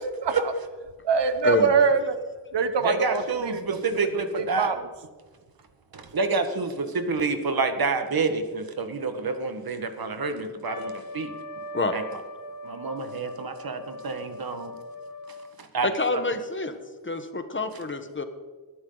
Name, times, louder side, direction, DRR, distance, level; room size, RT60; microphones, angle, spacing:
voice 1, 1.0-2.2 2.5-4.8, right 5 dB, 75° right, 10 dB, 1.2 m, -24 dB
voice 2, 2.8-4.7 5.9-11.3 11.9-12.0 12.6-14.7 15.6-15.9, right 4 dB, 55° right, 7 dB, 1.7 m, -28 dB
Trumpet, 10.6-15.6, left 1 dB, 50° left, 1.3 m, -40 dB
voice 3, 15.8-16.7 17.0-18.2, left 3 dB, 25° left, 8 dB, 1.3 m, -27 dB
21.5 x 11.5 x 4.0 m, 1.4 s
wide cardioid pair, 125°, 43 cm